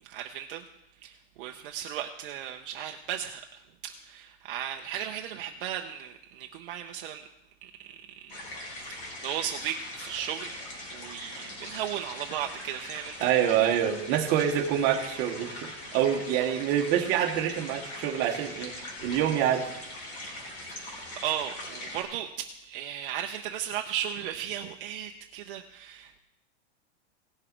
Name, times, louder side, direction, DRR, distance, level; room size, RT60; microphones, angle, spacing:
voice 1, 0.1-0.6 1.0-3.6 4.0-7.3 7.6-7.7 8.2-8.4 8.9-10.6 10.9-13.3 20.7-20.9 21.2-22.3 22.6-26.2, right 10 dB, 50° right, 3 dB, 0.8 m, -36 dB
sound 1, 8.3-22.0, left 1 dB, 35° left, 2.8 m, -41 dB
voice 2, 13.2-18.7 19.0-19.7, right 10 dB, 30° right, 2 dB, 1.3 m, -26 dB
17.5 x 6.2 x 4.5 m, 0.82 s
supercardioid pair, 170°, 35 cm